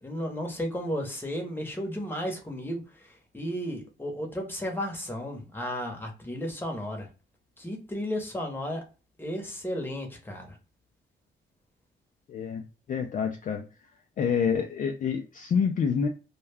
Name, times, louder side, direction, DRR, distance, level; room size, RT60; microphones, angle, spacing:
voice 1, 0.0-7.1 7.6-8.8 9.2-10.6, equal, 10° left, 0.9 m, -34 dB
voice 2, 12.3-12.6 12.9-13.6 14.2-16.1, left 6 dB, 40° left, 0.4 m, -27 dB
2.2 x 2.2 x 3.3 m
cardioid pair, 90°, 20 cm